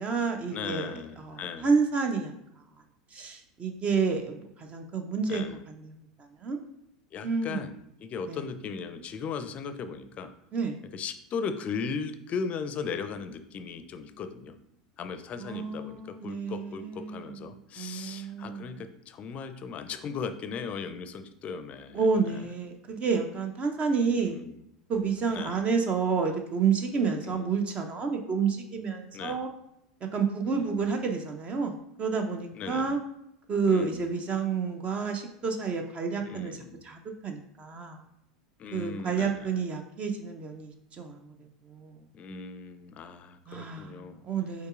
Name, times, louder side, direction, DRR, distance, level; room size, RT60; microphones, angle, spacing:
voice 1, 0.0-2.3 3.1-6.0 6.4-6.6 7.2-7.7 8.3-8.4 10.5-10.8 15.4-17.3 17.8-18.7 21.9-24.4 24.9-29.5 30.1-33.0 33.5-36.6 36.8-38.0 38.7-41.3 41.7-42.0 43.5-44.7, right 5 dB, 30° right, 5 dB, 0.6 m, -29 dB
voice 2, 0.5-1.7 5.3-5.6 7.1-7.7 8.0-10.3 10.9-14.5 15.0-22.4 24.2-24.6 25.3-25.6 27.2-27.6 29.1-29.4 30.5-30.8 32.5-33.0 33.7-34.0 36.2-36.8 38.6-39.6 42.1-44.2, left 5 dB, 35° left, 10 dB, 0.5 m, -37 dB
5.3 x 3.8 x 2.5 m, 0.79 s
figure-of-eight pair, 85°, 4 cm